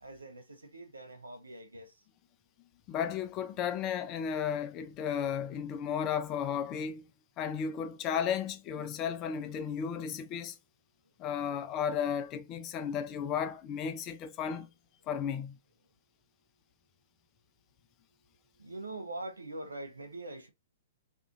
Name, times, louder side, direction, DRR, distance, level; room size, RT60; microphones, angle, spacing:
voice 1, 0.0-1.9 18.6-20.5, right 2 dB, 90° right, 0.6 m, -43 dB
voice 2, 2.9-7.1 7.4-10.6 11.2-14.7 15.1-15.6, left 8 dB, 30° left, 0.5 m, -34 dB
2.6 x 2.4 x 2.5 m
figure-of-eight pair, 115°, 0 cm